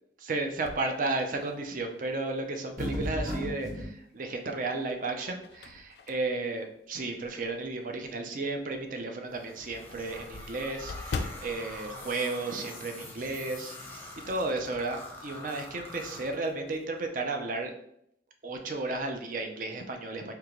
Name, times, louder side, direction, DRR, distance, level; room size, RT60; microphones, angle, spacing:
voice 1, 0.2-17.7 18.4-20.3, right 2 dB, 50° right, 4 dB, 0.5 m, -33 dB
sound 1, 0.6-1.9 2.4-2.5 4.0-4.5 5.0-7.6 8.1-8.2 8.6-8.7 9.0-9.1 9.3-13.1 13.3-13.6 13.9-14.5, left 4 dB, 65° left, 0.3 m, -42 dB
sound 2, 2.8-3.9, equal, 20° right, 0.8 m, -33 dB
sound 3, 9.3-16.8, left 2 dB, 10° left, 0.6 m, -45 dB
3.6 x 2.8 x 3.0 m, 0.74 s
head